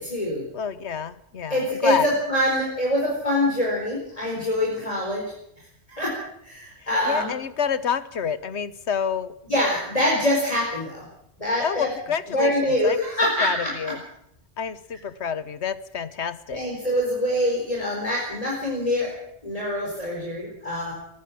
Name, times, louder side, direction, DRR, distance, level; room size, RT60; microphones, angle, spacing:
voice 1, 0.0-0.5 1.5-5.2 5.9-6.1 6.4-7.3 9.4-11.1 11.4-11.9 12.3-13.9 16.5-19.1 19.4-20.9, left 1 dB, 35° left, -2 dB, 4.8 m, -24 dB
voice 2, 0.5-2.1 7.1-9.3 11.6-13.0 13.4-14.0 14.6-16.6, left 7 dB, 80° left, 15 dB, 1.4 m, -28 dB
21.0 x 15.0 x 8.6 m, 0.77 s
omnidirectional pair, 1.1 m